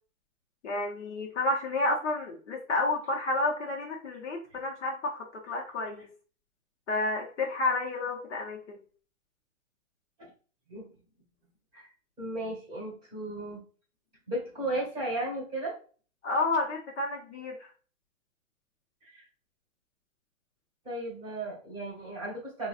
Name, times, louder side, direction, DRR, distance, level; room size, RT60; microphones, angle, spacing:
voice 1, 0.6-6.1 6.9-8.8 16.2-17.7, left 2 dB, 60° left, 1 dB, 0.8 m, -30 dB
voice 2, 12.2-13.6 14.3-15.7 19.0-19.2 20.8-22.7, right 1 dB, 10° right, -5 dB, 1.5 m, -35 dB
3.9 x 2.3 x 2.4 m, 0.40 s
hypercardioid pair, 160°, 41 cm